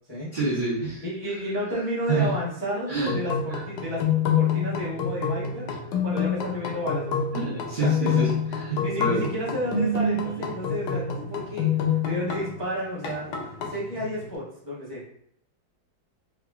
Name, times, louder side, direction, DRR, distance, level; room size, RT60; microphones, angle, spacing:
voice 1, 0.3-1.0 2.1-2.3 2.9-3.1 3.5-3.6 7.3-9.2, right 3 dB, 45° right, -8 dB, 0.6 m, -27 dB
voice 2, 1.0-4.0 4.4-5.7 6.0-7.1 7.7-8.4 8.8-15.1, equal, 25° left, -9 dB, 0.5 m, -31 dB
sound 1, 3.0-12.6 13.0-14.4, left 5 dB, 70° left, 1.1 m, -27 dB
4.8 x 2.3 x 2.3 m, 0.69 s
omnidirectional pair, 2.0 m